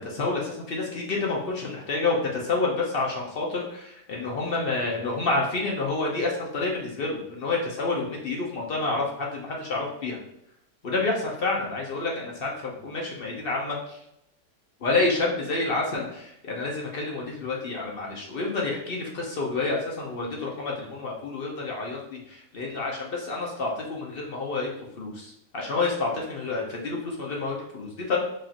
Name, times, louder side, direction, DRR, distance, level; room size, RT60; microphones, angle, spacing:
voice 1, 0.0-10.2 10.8-14.0 14.8-24.7 25.0-28.2, left 3 dB, 55° left, -2 dB, 0.6 m, -29 dB
4.9 x 2.5 x 2.8 m, 0.78 s
omnidirectional pair, 1.8 m